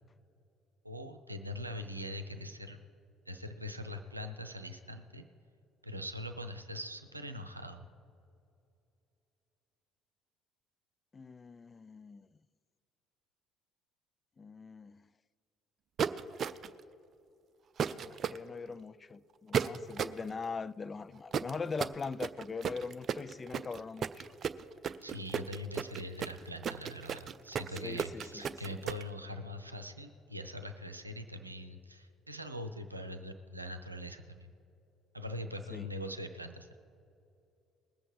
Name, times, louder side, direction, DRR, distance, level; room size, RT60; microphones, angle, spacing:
voice 1, 0.8-2.8 3.3-5.3 5.8-7.9 25.0-34.5 35.1-36.8, left 1 dB, 90° right, 0.6 m, -42 dB
voice 2, 11.1-12.3 14.4-15.1 17.9-24.3 27.8-28.8 35.7-35.9, left 4 dB, 30° left, 0.3 m, -41 dB
sound 1, 16.0-16.8 17.8-18.4 19.5-20.2 21.3-29.0, right 7 dB, 45° right, 0.4 m, -34 dB
20.5 x 7.7 x 4.7 m
figure-of-eight pair, 50°, 0 cm